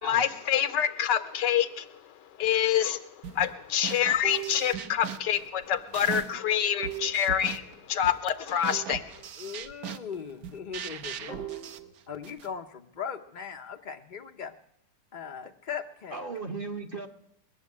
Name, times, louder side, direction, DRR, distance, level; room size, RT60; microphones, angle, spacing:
voice 1, 0.0-1.9 2.4-7.6 7.9-9.0, left 9 dB, 85° left, 1.5 m, -26 dB
sound 1, 3.2-3.5 3.8-6.5 6.8-12.5, right 8 dB, 65° right, 1.2 m, -40 dB
voice 2, 4.2-4.9 6.8-7.3 8.6-8.9 11.3-11.9 16.1-17.1, right 6 dB, 40° right, 1.0 m, -37 dB
voice 3, 9.4-11.3 12.1-14.5 15.1-16.2, left 7 dB, 55° left, 0.5 m, -39 dB
21.0 x 7.2 x 9.5 m
omnidirectional pair, 1.8 m